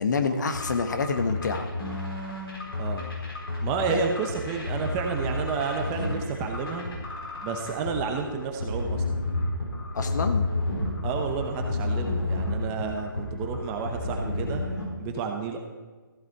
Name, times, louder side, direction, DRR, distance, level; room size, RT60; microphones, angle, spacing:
voice 1, 0.0-1.7 3.9-4.0 9.9-10.4, left 4 dB, 50° left, 8 dB, 1.1 m, -27 dB
sound 1, 0.5-14.9, left 2 dB, 85° left, 4.3 m, -31 dB
voice 2, 3.6-6.9 7.4-9.0 11.0-14.6 15.0-15.6, right 5 dB, 15° right, 4 dB, 0.8 m, -30 dB
14.5 x 8.7 x 4.6 m, 1.3 s
hypercardioid pair, 160°, 12 cm